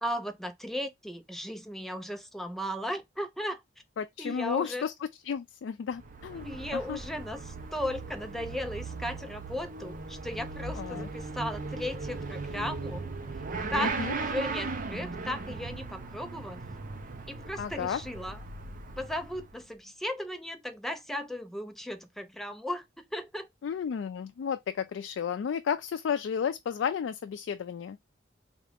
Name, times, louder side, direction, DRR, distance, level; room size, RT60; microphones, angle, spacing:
voice 1, 0.0-3.6 4.2-4.9 6.3-13.1 13.7-16.6 17.3-18.4 19.0-23.5, left 1 dB, ahead, 0.5 m, -36 dB
voice 2, 4.0-4.9 5.2-7.0 10.8-11.1 13.8-14.1 17.6-18.0 23.6-28.0, left 7 dB, 85° left, 0.3 m, -32 dB
Motorcycle / Accelerating revving vroom, 5.9-19.7, right 3 dB, 50° right, 0.6 m, -38 dB
3.6 x 2.5 x 3.4 m
head